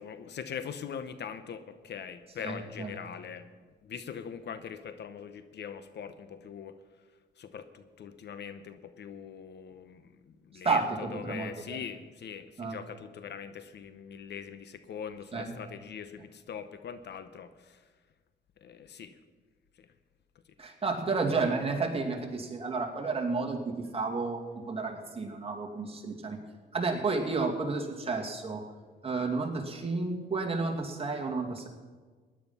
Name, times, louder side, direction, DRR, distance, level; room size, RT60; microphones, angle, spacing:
voice 1, 0.0-3.5 3.8-6.8 7.4-17.8 18.6-19.2 19.8-19.9, left 7 dB, 60° left, 11 dB, 0.9 m, -42 dB
voice 2, 2.4-2.9 10.6-11.5 12.6-12.8 15.3-15.5 20.6-26.4 26.7-28.6 29.0-31.7, right 4 dB, 30° right, 1 dB, 2.5 m, -31 dB
16.0 x 10.5 x 5.6 m, 1.4 s
cardioid pair, 90°, 20 cm